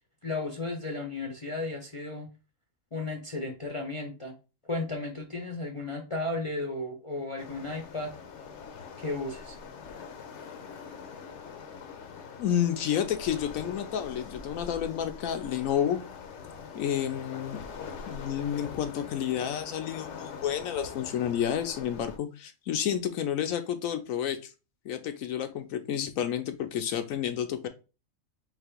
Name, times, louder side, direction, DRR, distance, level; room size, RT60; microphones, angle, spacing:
voice 1, 0.2-2.3 2.9-4.3 4.7-8.1 9.0-9.6, left 2 dB, 35° left, 1 dB, 0.5 m, -34 dB
Waves surf, 7.4-22.2, left 6 dB, 65° left, 0.9 m, -43 dB
voice 2, 12.4-16.0 16.7-17.6 18.1-24.5 24.8-27.7, left 9 dB, 80° left, 9 dB, 1.1 m, -30 dB
4.0 x 2.9 x 4.4 m, 0.31 s
omnidirectional pair, 1.4 m